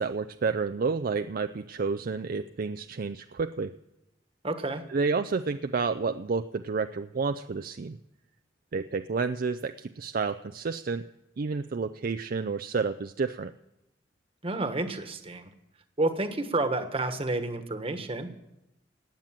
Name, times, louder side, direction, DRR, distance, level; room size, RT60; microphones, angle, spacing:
voice 1, 0.0-3.7 4.9-8.0 8.7-11.0 11.4-13.5, right 4 dB, 50° right, 8 dB, 0.4 m, -30 dB
voice 2, 4.4-4.8 14.4-15.5 16.0-18.3, right 2 dB, 30° right, 8 dB, 1.4 m, -30 dB
18.0 x 9.1 x 7.4 m, 0.89 s
head